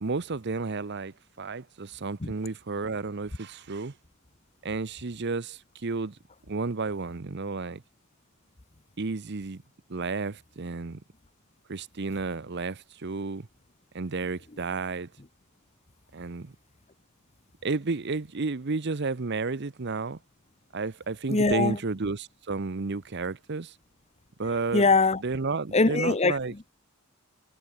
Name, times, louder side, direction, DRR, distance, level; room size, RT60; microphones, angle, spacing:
voice 1, 0.0-3.9 4.6-6.2 6.5-7.8 9.0-9.6 9.9-11.0 11.7-13.5 13.9-15.1 16.1-16.5 17.6-20.2 20.7-23.7 24.4-24.9 25.2-26.5, right 3 dB, 50° right, 0.8 m, -32 dB
voice 2, 21.3-21.8 24.7-25.2 25.7-26.4, left 3 dB, 30° left, 0.9 m, -21 dB
head